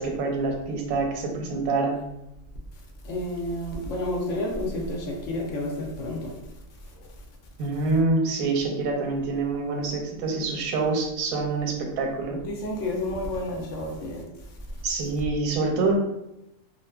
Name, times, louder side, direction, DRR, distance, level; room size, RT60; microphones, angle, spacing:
voice 1, 0.0-2.0 7.6-12.4 14.8-16.0, right 3 dB, 85° right, 1 dB, 1.0 m, -26 dB
voice 2, 3.0-6.4 12.3-14.2, left 1 dB, 70° left, 0 dB, 0.9 m, -30 dB
2.5 x 2.3 x 2.2 m, 0.89 s
omnidirectional pair, 1.4 m